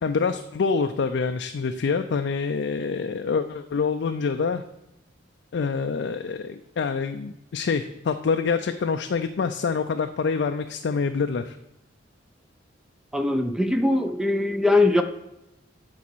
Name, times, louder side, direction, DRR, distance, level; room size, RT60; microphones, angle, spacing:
voice 1, 0.0-4.6 5.5-11.6, left 5 dB, 65° left, 7 dB, 0.4 m, -26 dB
voice 2, 13.1-15.0, left 2 dB, 5° right, 7 dB, 0.4 m, -21 dB
8.5 x 4.1 x 6.1 m, 0.90 s
head